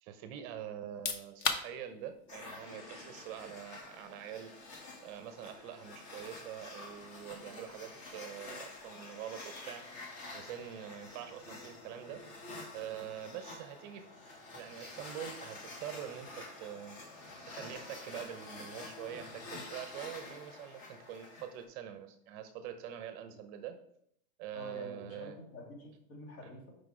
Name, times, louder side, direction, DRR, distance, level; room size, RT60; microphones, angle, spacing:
voice 1, 0.0-4.5 5.0-12.2 12.7-14.1 14.5-17.0 17.5-23.8 24.4-25.4, right 10 dB, 35° right, 9 dB, 0.6 m, -45 dB
sound 1, 0.8-13.4, left 4 dB, 20° left, 0.3 m, -45 dB
sound 2, 2.3-21.6, left 2 dB, 40° left, 1.9 m, -48 dB
voice 2, 24.5-26.7, left 2 dB, 65° left, -1 dB, 3.1 m, -48 dB
5.9 x 5.0 x 4.8 m, 0.71 s
hypercardioid pair, 130°, 44 cm